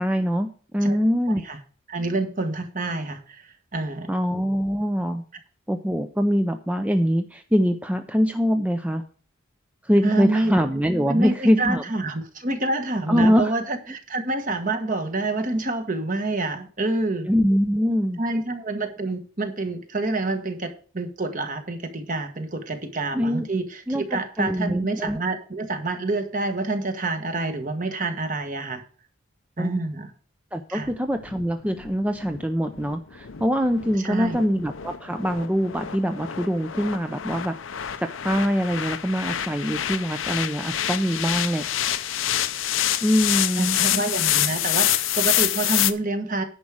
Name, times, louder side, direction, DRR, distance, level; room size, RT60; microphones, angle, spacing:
voice 1, 0.0-1.4 4.1-5.2 5.7-9.0 9.8-11.8 13.1-13.5 17.2-18.2 23.1-23.5 23.9-25.2 29.6-29.8 30.5-37.6 38.0-42.0 43.0-43.8, equal, 5° right, 7 dB, 0.5 m, -23 dB
voice 2, 1.3-1.6 1.9-4.1 10.0-10.5 11.0-17.3 18.2-28.8 29.6-30.1 30.7-30.9 34.0-34.4 43.6-46.4, right 2 dB, 40° right, 7 dB, 1.4 m, -27 dB
sound 1, 30.8-45.9, left 12 dB, 85° left, 0.7 m, -27 dB
10.5 x 4.9 x 7.3 m, 0.42 s
head